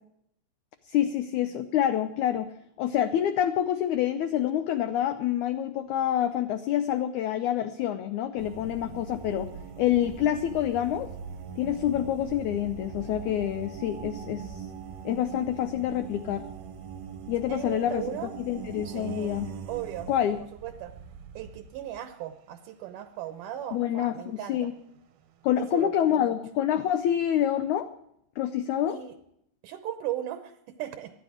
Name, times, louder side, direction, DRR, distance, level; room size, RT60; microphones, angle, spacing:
voice 1, 0.9-2.5 2.8-9.5 9.8-11.1 11.6-14.7 15.1-16.5 17.3-19.5 20.1-20.4 23.7-24.7 25.4-27.9 28.4-29.0, left 11 dB, 85° left, 9 dB, 1.7 m, -27 dB
sound 1, 8.4-22.2 24.1-24.2 24.7-25.1 25.4-25.8, right 7 dB, 90° right, 3.1 m, -42 dB
voice 2, 17.5-18.3 18.8-19.3 19.7-20.1 20.6-20.9 21.3-24.7 25.6-26.3 28.9-29.2 29.6-31.2, right 12 dB, 75° right, 9 dB, 2.2 m, -37 dB
19.0 x 12.5 x 4.9 m, 0.74 s
omnidirectional pair, 4.2 m